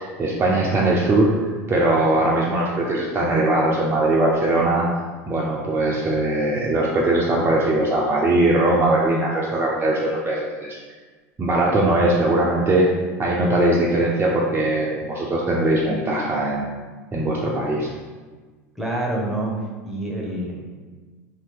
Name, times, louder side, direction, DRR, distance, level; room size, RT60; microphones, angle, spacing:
voice 1, 0.0-4.9 5.3-10.8 11.4-12.9 13.2-16.7 17.1-17.9, right 2 dB, 25° right, -4 dB, 0.5 m, -20 dB
voice 2, 18.8-19.5 19.8-20.6, right 1 dB, ahead, -2 dB, 0.8 m, -27 dB
2.7 x 2.7 x 3.6 m, 1.4 s
hypercardioid pair, 85°, 9 cm